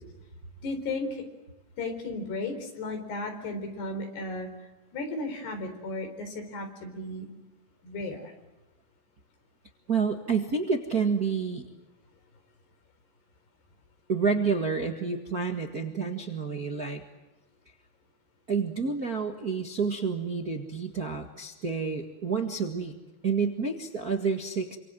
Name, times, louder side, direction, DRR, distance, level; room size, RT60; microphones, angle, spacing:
voice 1, 0.6-1.2 1.8-4.5 4.9-7.3 7.8-8.3, left 2 dB, 85° left, 7 dB, 6.3 m, -34 dB
voice 2, 9.9-11.6 14.1-17.0 18.5-22.9 23.2-24.8, right 5 dB, 40° right, 3 dB, 1.3 m, -29 dB
27.5 x 25.5 x 7.8 m, 1.1 s
omnidirectional pair, 4.6 m